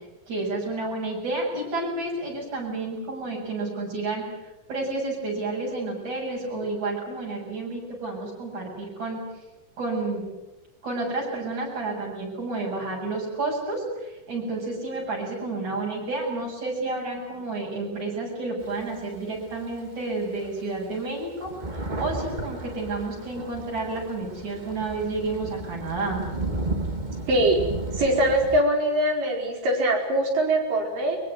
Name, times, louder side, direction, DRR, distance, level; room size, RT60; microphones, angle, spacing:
voice 1, 0.3-4.3 4.7-9.2 9.8-10.3 10.8-26.3, right 2 dB, 60° right, -2 dB, 8.9 m, -30 dB
Thunder, 18.6-19.9 20.4-20.5 20.8-28.6, right 2 dB, 20° right, 1.3 m, -33 dB
voice 2, 27.3-27.6 28.0-31.2, right 1 dB, 80° right, 2 dB, 6.5 m, -22 dB
23.0 x 23.0 x 9.5 m, 1.0 s
omnidirectional pair, 3.8 m